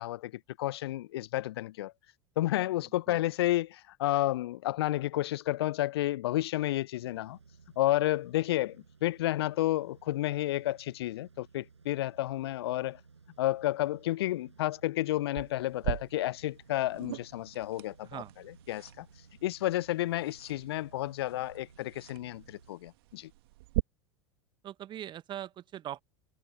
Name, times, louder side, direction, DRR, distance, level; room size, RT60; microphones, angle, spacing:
voice 1, 0.0-1.9 2.4-7.4 7.8-13.0 13.4-19.1 19.4-23.3, left 15 dB, 60° left, 0.8 m, -31 dB
sound 1, 7.0-22.7, right 5 dB, 80° right, 5.9 m, -58 dB
sound 2, 15.4-23.8, right 20 dB, 55° right, 1.9 m, -41 dB
voice 2, 24.6-26.0, right 11 dB, 30° right, 1.2 m, -41 dB
figure-of-eight pair, 80°, 15 cm